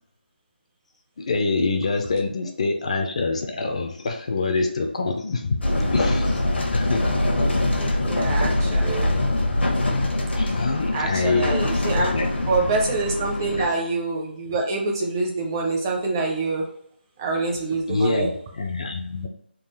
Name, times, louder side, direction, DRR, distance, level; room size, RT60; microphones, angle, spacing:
voice 1, 1.2-5.6 5.9-6.4 6.7-7.1 10.4-11.6 12.0-12.3 12.5-12.7 13.6-13.7 17.9-19.3, left 3 dB, 35° left, 4 dB, 0.4 m, -25 dB
sound 1, 5.6-13.7, left 1 dB, 85° left, 0.9 m, -23 dB
voice 2, 7.8-9.1 10.9-12.1 12.5-16.6 17.2-18.3, right 3 dB, 20° right, -1 dB, 0.6 m, -26 dB
3.8 x 2.4 x 4.1 m, 0.70 s
figure-of-eight pair, 170°, 6 cm